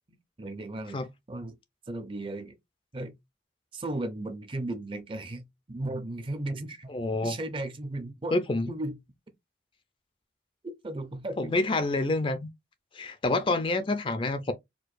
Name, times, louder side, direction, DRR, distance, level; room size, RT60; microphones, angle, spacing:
voice 1, 0.1-1.0 1.3-1.5 1.9-2.5 2.9-3.1 3.7-6.9 7.2-8.4 8.7-9.0 10.6-11.5, right 2 dB, 25° right, 0.5 m, -35 dB
voice 2, 6.9-7.3 8.3-8.7 11.4-12.5 12.9-14.5, left 2 dB, 25° left, 0.4 m, -27 dB
4.5 x 2.2 x 2.5 m
head